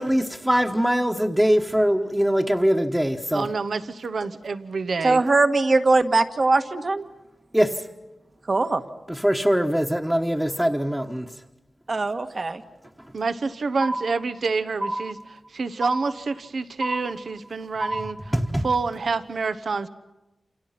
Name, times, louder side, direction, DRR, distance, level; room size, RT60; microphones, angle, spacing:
voice 1, 0.0-3.5 7.5-7.9 9.1-11.3 18.3-18.6, equal, 10° right, 0 dB, 1.3 m, -22 dB
voice 2, 3.3-5.2 13.1-18.3 18.6-19.9, right 4 dB, 75° right, 12 dB, 1.0 m, -28 dB
voice 3, 5.0-7.0 8.5-8.8 11.9-12.6, right 3 dB, 50° right, 8 dB, 1.6 m, -21 dB
sound 1, 13.8-14.5 14.8-15.5 15.8-16.5 16.8-17.5 17.8-18.5, right 1 dB, 30° right, 1.3 m, -30 dB
28.5 x 28.0 x 5.9 m, 1.0 s
wide cardioid pair, 75°, 0 cm